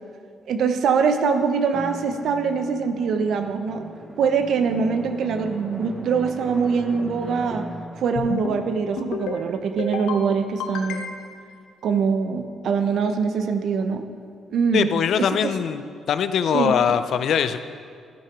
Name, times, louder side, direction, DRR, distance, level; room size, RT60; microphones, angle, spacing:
voice 1, 0.5-3.9 4.2-7.7 8.0-11.0 11.8-14.1 14.5-14.9 15.2-15.3 16.5-16.7, right 5 dB, 70° right, 8 dB, 0.8 m, -23 dB
Drum, 1.7-10.0, right 1 dB, 20° right, 1.0 m, -39 dB
sound 1, 8.2-8.6 9.0-9.4 9.8-10.2 10.6-11.4, left 4 dB, 85° left, 0.9 m, -30 dB
voice 2, 14.7-17.6, left 8 dB, 65° left, 11 dB, 0.5 m, -22 dB
13.0 x 5.8 x 6.1 m, 2.1 s
cardioid pair, 90°, 0 cm